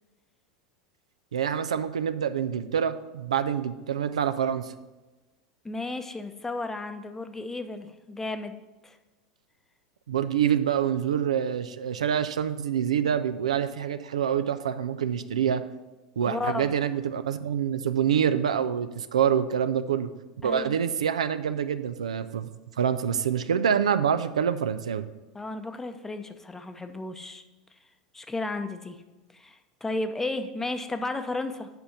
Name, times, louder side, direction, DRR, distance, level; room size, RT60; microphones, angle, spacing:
voice 1, 1.3-4.7 10.1-15.6 16.2-20.1 20.4-22.5 22.8-25.0, right 8 dB, 75° right, 11 dB, 0.4 m, -26 dB
voice 2, 5.6-8.6 8.8-9.0 16.2-16.7 20.4-20.8 25.3-27.4 28.1-29.0 29.3-31.7, left 2 dB, 10° left, 8 dB, 0.7 m, -33 dB
7.9 x 5.4 x 5.7 m, 1.1 s
figure-of-eight pair, 85°, 4 cm